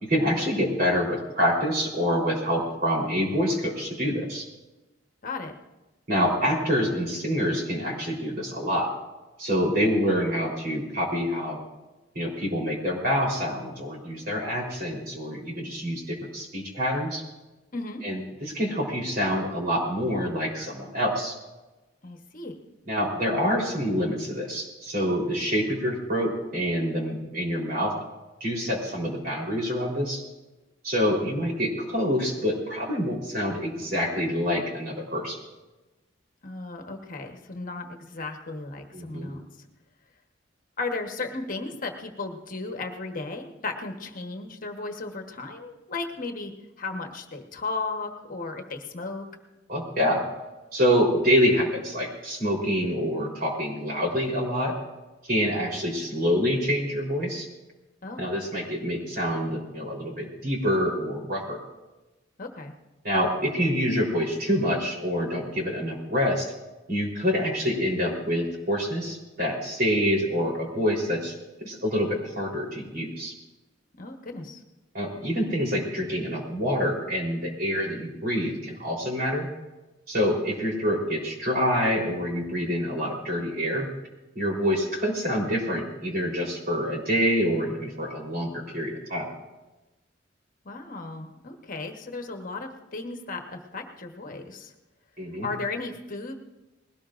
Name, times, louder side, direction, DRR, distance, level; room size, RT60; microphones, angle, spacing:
voice 1, 0.0-4.4 6.1-8.9 9.4-11.6 12.1-17.2 18.0-21.4 22.9-27.9 28.4-30.2 30.8-35.4 38.9-39.3 49.7-50.3 50.7-54.7 55.2-57.5 58.2-61.6 63.0-66.5 66.9-71.3 71.6-73.3 74.9-79.5 80.1-83.9 84.4-89.3 95.2-95.5, equal, 50° right, -1 dB, 3.8 m, -26 dB
voice 2, 5.2-5.5 17.7-18.0 22.0-22.5 36.4-39.5 40.8-46.5 46.8-49.2 58.0-58.3 62.4-62.7 73.9-74.6 90.6-94.7 95.4-96.3, left 3 dB, 45° left, 4 dB, 1.2 m, -35 dB
20.5 x 17.5 x 2.5 m, 1.1 s
head